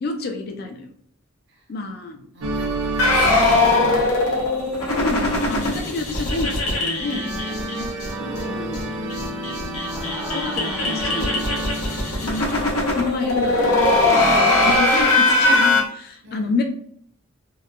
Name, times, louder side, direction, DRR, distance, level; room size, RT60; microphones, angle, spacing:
voice 1, 0.0-0.9 1.7-2.3 5.0-7.9 8.5-8.9 10.3-11.4 12.2-14.0 14.6-16.6, left 3 dB, 45° left, 4 dB, 0.3 m, -29 dB
voice 2, 2.3-3.9 9.6-10.2 16.2-16.5, right 1 dB, 50° right, 0 dB, 0.7 m, -39 dB
sound 1, 2.4-5.0 6.9-13.2, right 2 dB, 85° right, 0.5 m, -31 dB
sound 2, 3.0-8.1 8.3-8.4 8.7-8.8 9.1-15.8, left 2 dB, 85° left, 0.8 m, -20 dB
sound 3, 8.2-9.0 9.7-11.5 13.5-15.0, right 1 dB, 5° right, 0.5 m, -32 dB
2.8 x 2.1 x 2.3 m, 0.65 s
head